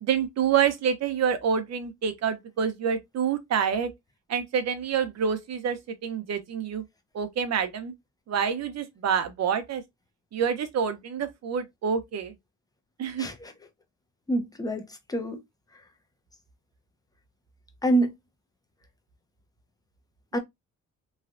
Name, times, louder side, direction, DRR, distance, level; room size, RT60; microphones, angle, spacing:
voice 1, 0.0-3.9 4.3-6.8 7.1-7.9 8.3-9.8 10.3-12.3 13.0-13.3, right 7 dB, 60° right, 0.8 m, -27 dB
voice 2, 13.2-13.5 14.3-15.4 17.8-18.1 20.3-20.4, right 1 dB, 10° left, 0.7 m, -26 dB
3.2 x 2.3 x 2.5 m
cardioid pair, 90°, 30 cm